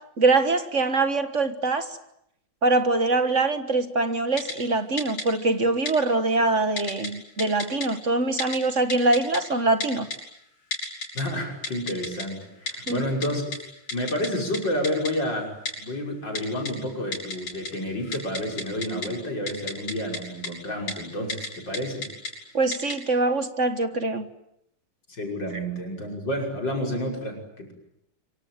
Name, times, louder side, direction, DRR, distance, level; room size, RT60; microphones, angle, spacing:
voice 1, 0.2-1.9 2.6-10.1 12.9-13.1 22.5-24.3, right 3 dB, 35° right, 1.7 m, -23 dB
Typing, 4.4-4.5 5.0-5.2 5.9-6.0 6.8-7.1 7.4-7.9 8.4-8.6 8.9-9.4 9.8-10.2 10.7-11.2 11.6-12.2 12.7-12.9 13.2-13.3 13.5-13.6 13.9-14.3 14.5-14.6 14.8-15.1 15.7-15.8 16.4-16.7 17.1-17.7 18.0-19.1 19.5-20.2 20.4-20.5 20.9-21.0 21.3-21.5 21.7-22.3 22.7-22.9, left 3 dB, 80° left, 7.7 m, -31 dB
voice 2, 11.1-13.4 13.9-22.1 25.1-27.7, equal, 55° left, 6.6 m, -30 dB
26.5 x 24.0 x 9.2 m
omnidirectional pair, 2.4 m